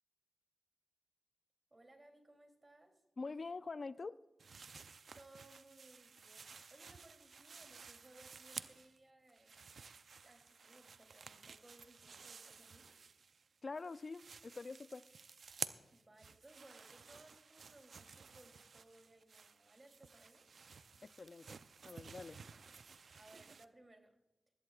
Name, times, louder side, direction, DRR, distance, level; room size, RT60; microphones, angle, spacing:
voice 1, 1.7-3.0 5.2-9.6 10.2-12.9 15.9-20.5 23.1-24.1, right 1 dB, 30° right, 4 dB, 3.0 m, -63 dB
voice 2, 3.2-4.2 13.6-15.0 21.0-21.5 21.8-22.4, left 3 dB, 50° left, 16 dB, 0.4 m, -45 dB
sound 1, 4.4-9.0 9.3-13.5 13.8-23.7, right 5 dB, 70° right, 0.5 m, -53 dB
20.0 x 14.0 x 2.4 m, 0.96 s
cardioid pair, 50°, 0 cm